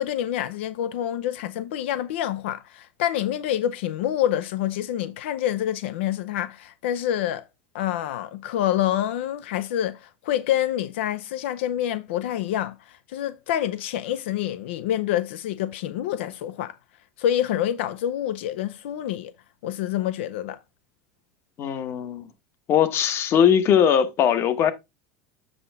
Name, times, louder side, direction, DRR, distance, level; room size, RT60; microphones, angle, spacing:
voice 1, 0.0-7.4 7.7-16.8 17.2-19.3 19.6-20.6, left 11 dB, 85° left, 0.6 m, -27 dB
voice 2, 21.6-22.3 22.7-24.7, left 8 dB, 40° left, 1.1 m, -20 dB
7.8 x 5.6 x 3.5 m
supercardioid pair, 130°, 6 cm